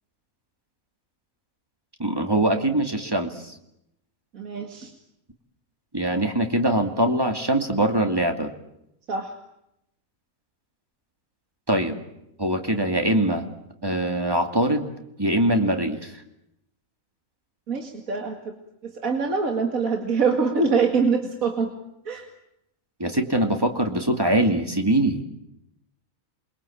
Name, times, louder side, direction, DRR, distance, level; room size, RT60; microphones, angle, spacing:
voice 1, 2.0-3.5 5.9-8.5 11.7-12.0 12.4-13.5 13.8-14.9 15.2-16.2 23.0-25.2, right 1 dB, 15° right, 5 dB, 2.5 m, -23 dB
voice 2, 4.3-4.9 9.1-9.3 17.7-18.5 18.8-21.7 22.1-22.3, right 5 dB, 80° right, 4 dB, 2.5 m, -24 dB
28.0 x 23.0 x 8.7 m, 0.83 s
omnidirectional pair, 1.4 m